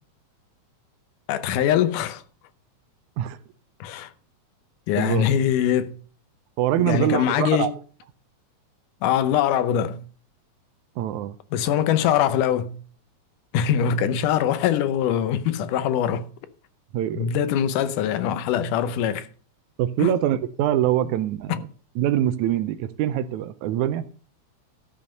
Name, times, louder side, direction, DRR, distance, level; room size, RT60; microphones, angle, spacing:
voice 1, 1.3-2.2 3.8-4.1 4.9-6.0 6.8-7.7 9.0-10.1 11.5-12.8 13.5-16.3 17.2-19.3 20.0-20.1 21.5-21.6, left 9 dB, 85° left, 2.4 m, -22 dB
voice 2, 6.6-7.7 11.0-11.4 16.9-17.3 19.8-21.7 22.0-24.1, right 11 dB, 80° right, 1.9 m, -24 dB
12.5 x 5.6 x 6.5 m
omnidirectional pair, 3.6 m